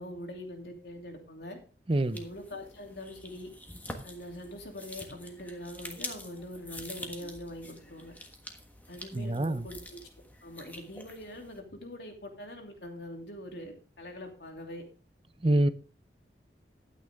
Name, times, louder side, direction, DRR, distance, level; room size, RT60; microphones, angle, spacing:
voice 1, 0.0-1.6 2.1-3.5 4.0-8.1 8.9-10.1 10.4-14.8 15.4-15.6, left 1 dB, 75° left, 2.9 m, -43 dB
sound 1, 1.9-11.6, left 1 dB, 10° left, 1.4 m, -46 dB
voice 2, 9.1-9.7 15.4-15.7, right 1 dB, 30° right, 0.6 m, -25 dB
12.5 x 9.1 x 3.5 m
head